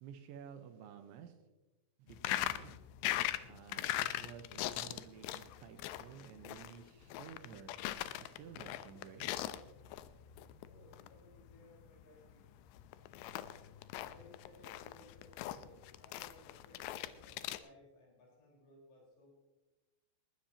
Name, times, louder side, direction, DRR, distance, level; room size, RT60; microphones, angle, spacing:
voice 1, 0.0-1.4 2.0-2.8 3.4-7.7 8.2-9.3, right 8 dB, 75° right, 7 dB, 3.1 m, -53 dB
sound 1, 2.1-17.6, left 14 dB, 85° left, 2.4 m, -41 dB
voice 2, 10.6-12.4 14.0-19.4, left 1 dB, 60° left, -3 dB, 6.5 m, -61 dB
20.0 x 15.0 x 2.9 m, 1.1 s
omnidirectional pair, 5.6 m